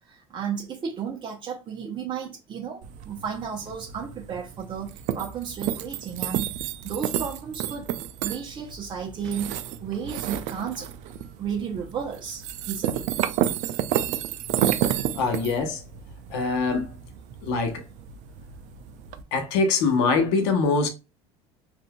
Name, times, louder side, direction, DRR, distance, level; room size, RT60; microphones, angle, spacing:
voice 1, 0.0-6.6 6.8-7.9 8.2-10.9 11.4-13.1, right 7 dB, 35° right, 0.8 m, -33 dB
sound 1, 2.8-19.2, right 11 dB, 60° right, 0.4 m, -31 dB
voice 2, 15.1-15.8 16.3-16.9 17.4-17.8 19.3-20.9, left 4 dB, 75° left, 0.9 m, -23 dB
3.6 x 2.5 x 2.2 m
hypercardioid pair, 80°, 14 cm